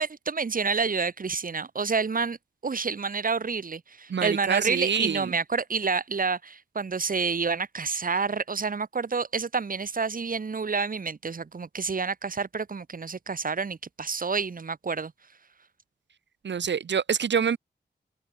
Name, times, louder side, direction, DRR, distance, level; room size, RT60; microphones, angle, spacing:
voice 1, 0.0-2.4 2.6-15.1, right 5 dB, 50° right, 2.1 m, -29 dB
voice 2, 4.1-5.2 16.4-17.6, right 7 dB, 90° right, 1.6 m, -26 dB
wide cardioid pair, 110°, 18 cm